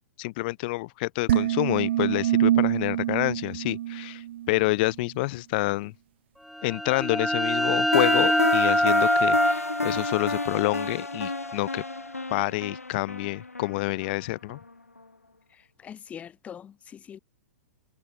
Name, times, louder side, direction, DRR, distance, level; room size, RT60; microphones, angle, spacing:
voice 1, 0.2-5.9 6.6-11.8 12.3-14.6, left 22 dB, 40° left, 1.7 m, -28 dB
sound 1, 1.3-4.6, right 13 dB, 50° right, 0.7 m, -25 dB
sound 2, 6.5-12.0, equal, ahead, 3.0 m, -25 dB
sound 3, 7.9-14.7, left 3 dB, 80° left, 2.5 m, -31 dB
voice 2, 15.8-17.2, left 8 dB, 15° left, 1.2 m, -42 dB
figure-of-eight pair, 105°, 8 cm